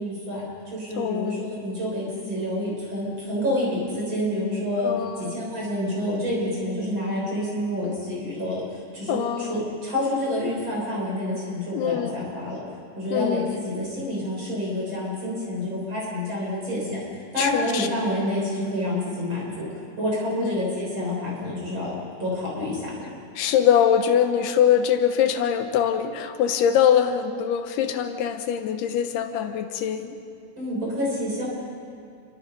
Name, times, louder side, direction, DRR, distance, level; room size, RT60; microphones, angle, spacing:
voice 1, 0.0-8.6 8.9-12.6 13.0-17.0 17.3-19.7 20.0-21.9 22.2-22.9 30.6-31.4, left 1 dB, 30° right, -4 dB, 7.3 m, -28 dB
voice 2, 1.0-1.4 4.8-5.4 9.1-9.6 11.7-12.1 13.1-13.6 17.4-17.9 20.4-20.6 23.4-30.2, left 9 dB, 85° left, 7 dB, 3.1 m, -23 dB
28.5 x 24.0 x 5.4 m, 2.4 s
omnidirectional pair, 4.5 m